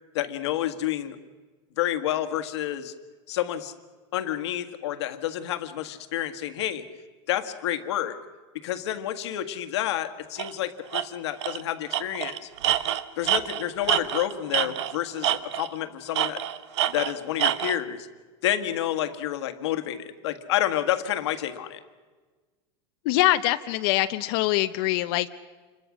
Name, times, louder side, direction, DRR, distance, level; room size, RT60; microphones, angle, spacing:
voice 1, 0.1-1.2 1.8-2.9 3.3-3.7 4.1-6.9 7.3-8.2 8.6-12.5 13.2-16.4 16.9-18.1 18.4-21.8, left 12 dB, 85° left, 9 dB, 1.7 m, -29 dB
Tools, 10.4-10.5 10.9-11.0 11.4-11.6 11.9-14.9 15.2-15.8 16.1-17.8, right 12 dB, 80° right, 1.0 m, -26 dB
voice 2, 23.0-25.3, left 16 dB, 60° left, 9 dB, 0.7 m, -23 dB
28.0 x 22.5 x 6.3 m, 1.4 s
supercardioid pair, 145°, 14 cm